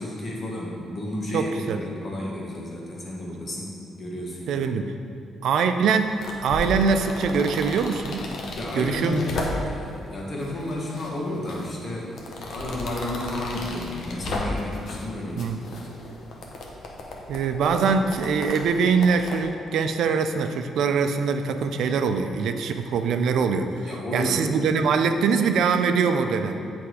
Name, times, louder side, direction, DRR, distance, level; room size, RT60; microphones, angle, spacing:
voice 1, 0.0-4.7 8.5-15.6 23.8-24.5, left 1 dB, 40° left, -3 dB, 1.5 m, -32 dB
voice 2, 1.3-1.8 4.5-4.9 5.4-6.1 6.4-8.3 8.8-9.2 15.4-15.6 17.3-23.7 24.1-26.6, right 5 dB, 75° right, 7 dB, 0.4 m, -23 dB
sound 1, 5.9-9.9 10.4-11.1 11.4-15.1 15.4-19.4, left 2 dB, 70° left, 0.9 m, -34 dB
8.1 x 3.4 x 4.8 m, 2.6 s
cardioid pair, 90°, 0 cm